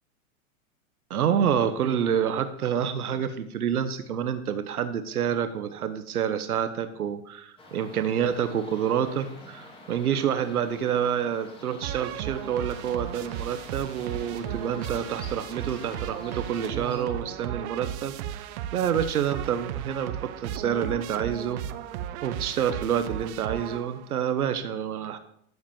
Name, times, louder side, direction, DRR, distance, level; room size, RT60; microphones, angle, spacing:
voice 1, 1.1-21.8 22.2-25.2, right 8 dB, 90° right, 10 dB, 1.2 m, -28 dB
sound 1, 7.6-17.0, left 2 dB, 10° left, 2.5 m, -48 dB
sound 2, 11.8-24.2, right 11 dB, 50° right, 0.9 m, -35 dB
12.5 x 4.9 x 7.2 m, 0.68 s
hypercardioid pair, 125°, 43 cm